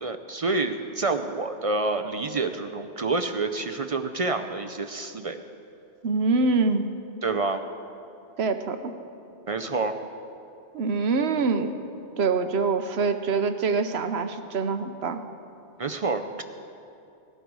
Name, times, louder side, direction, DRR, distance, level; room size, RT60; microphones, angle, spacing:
voice 1, 0.0-5.4 7.2-7.6 9.5-10.0 15.8-16.4, right 3 dB, 45° right, 7 dB, 0.5 m, -28 dB
voice 2, 6.0-6.9 8.4-9.0 10.7-11.8 12.2-15.2, right 4 dB, 75° right, 9 dB, 1.1 m, -25 dB
18.0 x 12.0 x 4.7 m, 2.7 s
omnidirectional pair, 1.1 m